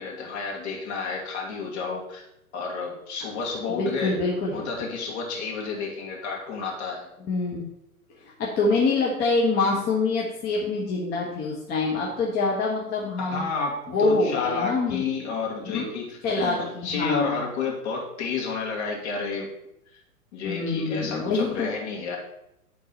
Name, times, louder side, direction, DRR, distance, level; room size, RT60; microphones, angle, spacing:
voice 1, 0.0-2.2 2.5-4.2 4.5-7.1 13.2-19.5 19.9-20.0 20.3-22.2, left 4 dB, 45° left, -2 dB, 2.4 m, -31 dB
voice 2, 3.7-4.5 7.3-7.7 8.6-13.5 13.9-15.0 15.7-15.8 16.2-17.4 20.4-21.7, left 3 dB, 20° left, -3 dB, 1.2 m, -25 dB
11.5 x 3.9 x 4.2 m, 0.81 s
figure-of-eight pair, 115°, 45 cm